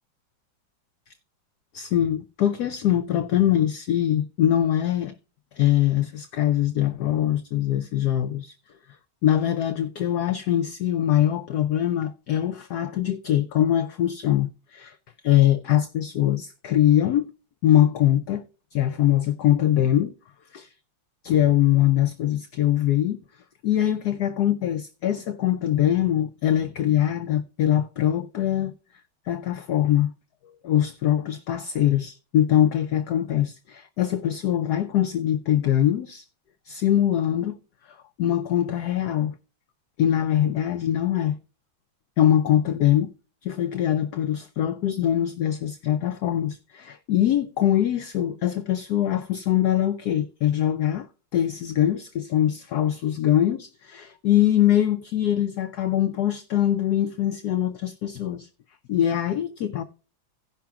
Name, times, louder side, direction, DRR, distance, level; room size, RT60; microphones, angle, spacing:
voice 1, 1.7-5.2 5.6-8.5 9.2-15.0 15.2-17.3 17.6-18.4 18.7-20.1 20.5-20.7 21.2-23.2 23.6-28.7 29.3-30.1 30.6-36.2 36.7-37.6 37.9-39.3 40.0-41.4 42.2-43.1 43.4-51.1 51.3-58.5 58.9-59.8, left 11 dB, 70° left, 0.9 m, -23 dB
17.0 x 5.8 x 2.4 m
omnidirectional pair, 2.2 m